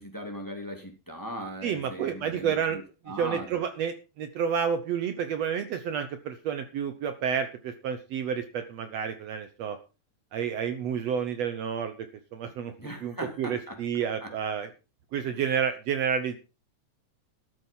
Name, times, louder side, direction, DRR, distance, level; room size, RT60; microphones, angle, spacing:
voice 1, 0.0-3.5 12.8-13.7 14.2-14.3 15.3-15.4, right 1 dB, 5° left, 3 dB, 2.8 m, -39 dB
voice 2, 1.6-2.8 3.2-9.8 10.3-12.1 12.3-12.7 13.0-14.7 15.1-16.4, right 7 dB, 65° right, 9 dB, 2.0 m, -30 dB
13.0 x 8.9 x 5.5 m, 0.32 s
omnidirectional pair, 3.5 m